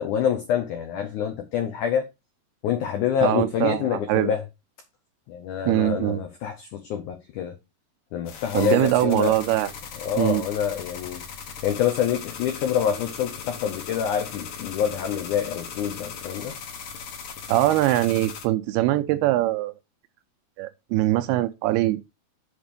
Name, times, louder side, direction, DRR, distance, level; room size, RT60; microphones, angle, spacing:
voice 1, 0.0-2.0 2.6-4.4 5.3-7.6 8.1-9.4 10.0-11.2 11.6-16.5, left 8 dB, 85° left, 1.7 m, -26 dB
voice 2, 3.2-4.3 5.7-6.2 8.5-9.7 10.2-10.4 17.5-19.7 20.6-22.0, right 15 dB, 80° right, 2.5 m, -22 dB
sound 1, 8.3-18.5, left 6 dB, 60° left, 2.5 m, -38 dB
7.2 x 4.4 x 5.2 m
omnidirectional pair, 4.7 m